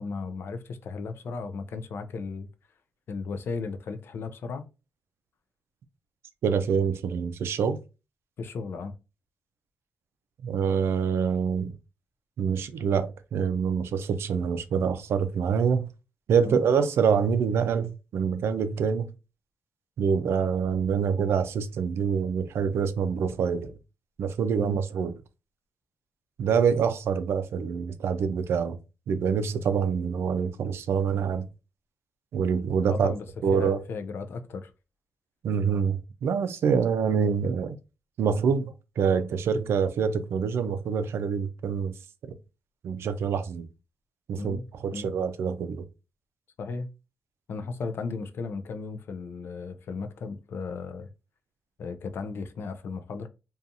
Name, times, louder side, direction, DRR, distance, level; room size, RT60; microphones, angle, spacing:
voice 1, 0.0-2.5 3.1-4.7 8.4-8.9 16.4-16.6 24.6-24.8 32.9-33.2 33.5-34.7 44.4-44.7 44.9-45.1 46.6-46.9 47.5-51.1 51.8-53.3, left 4 dB, 65° left, 0.4 m, -35 dB
voice 2, 6.4-7.8 10.4-11.7 12.4-15.9 16.3-19.1 20.0-23.7 24.2-25.1 26.4-28.8 29.1-31.5 32.3-33.1 33.4-33.8 35.4-37.8 38.2-41.9 42.8-43.7 44.3-44.6 44.8-45.8, right 6 dB, 80° right, 0.4 m, -26 dB
2.5 x 2.3 x 2.7 m
wide cardioid pair, 125°, 4 cm